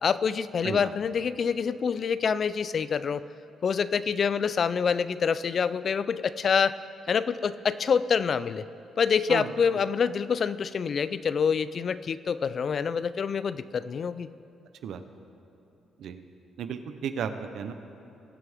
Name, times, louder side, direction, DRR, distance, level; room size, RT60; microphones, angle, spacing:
voice 1, 0.0-3.2 3.6-6.8 7.1-8.6 9.0-14.3, left 6 dB, 50° left, 15 dB, 0.3 m, -26 dB
voice 2, 0.6-0.9 9.3-9.5 14.8-15.0 16.0-16.2 16.6-17.7, right 7 dB, 75° right, 9 dB, 0.7 m, -34 dB
20.0 x 7.9 x 3.6 m, 2.8 s
cardioid pair, 90°, 0 cm